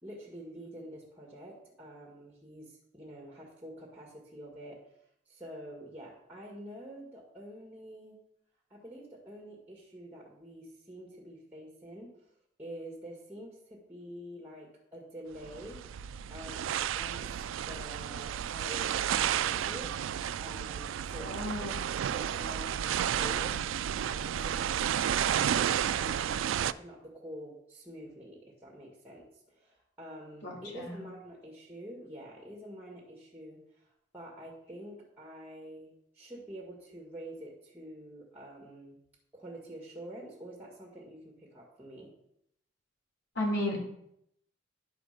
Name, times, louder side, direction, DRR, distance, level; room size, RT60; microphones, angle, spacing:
voice 1, 0.0-4.8 5.3-8.2 8.7-12.3 12.6-20.0 20.4-21.4 21.7-21.8 22.1-23.6 24.1-39.0 39.3-42.1, equal, 10° right, -2 dB, 1.7 m, -47 dB
sound 1, 15.3-26.7, right 9 dB, 80° right, 0.3 m, -32 dB
voice 2, 21.2-21.8 30.4-31.0 43.4-43.8, left 1 dB, 60° left, -2 dB, 3.7 m, -33 dB
10.5 x 5.1 x 6.6 m, 0.76 s
head